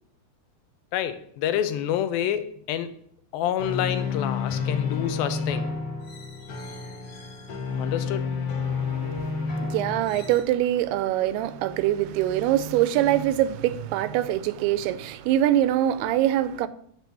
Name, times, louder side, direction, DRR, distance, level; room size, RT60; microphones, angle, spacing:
voice 1, 0.9-2.9 3.3-5.7 7.8-8.3, left 10 dB, 80° left, 2.3 m, -28 dB
sound 1, 3.6-10.4, left 5 dB, 60° left, 1.6 m, -30 dB
voice 2, 8.7-16.7, right 12 dB, 85° right, 2.6 m, -24 dB
8.3 x 4.8 x 6.8 m
omnidirectional pair, 4.5 m